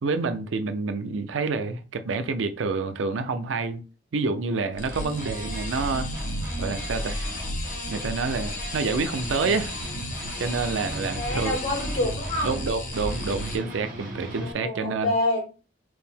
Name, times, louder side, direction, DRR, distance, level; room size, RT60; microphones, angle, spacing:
voice 1, 0.0-3.8 4.1-6.1 6.6-7.2 7.9-9.7 10.4-11.6 12.4-15.1, right 4 dB, 85° right, 0.5 m, -28 dB
sound 1, 4.7-13.6, left 1 dB, 45° left, 1.1 m, -33 dB
sound 2, 4.9-14.5, right 1 dB, 45° right, 1.3 m, -39 dB
voice 2, 11.2-12.6 14.3-15.4, left 1 dB, 70° left, 2.1 m, -27 dB
4.6 x 2.0 x 3.5 m
head